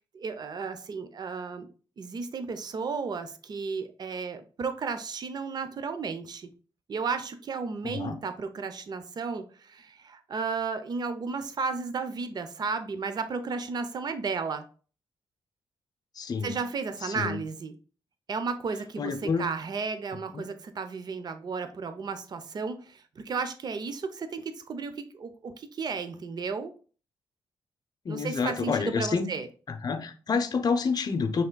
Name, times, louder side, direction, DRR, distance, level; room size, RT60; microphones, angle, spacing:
voice 1, 0.1-1.7 2.0-6.5 6.9-14.6 16.4-17.7 18.3-26.7 28.1-29.5, right 4 dB, 45° right, 0.6 m, -33 dB
voice 2, 7.8-8.2 16.2-16.5 17.0-17.4 19.0-19.5 20.3-20.5 28.0-29.3 29.7-31.4, left 5 dB, 40° left, 0.6 m, -28 dB
5.5 x 3.6 x 2.2 m
cardioid pair, 105°, 10 cm